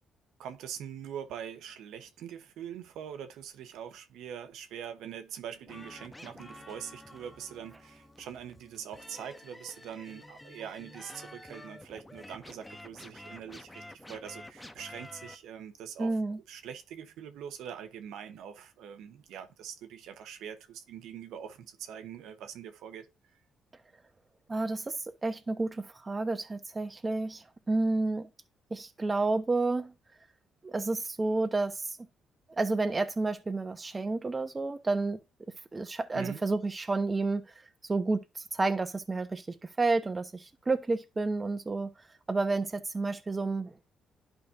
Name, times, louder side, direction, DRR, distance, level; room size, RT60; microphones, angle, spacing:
voice 1, 0.4-16.2 16.5-23.1 36.1-36.4, right 8 dB, 85° right, 1.1 m, -43 dB
sound 1, 5.7-15.3, left 1 dB, 10° left, 1.0 m, -49 dB
voice 2, 16.0-16.4 24.5-25.0 25.2-28.3 28.7-29.9 30.6-32.0 32.5-35.2 35.7-37.5 37.8-41.9 42.3-43.9, right 3 dB, 25° right, 1.1 m, -30 dB
11.5 x 5.2 x 2.7 m
cardioid pair, 90°, 0 cm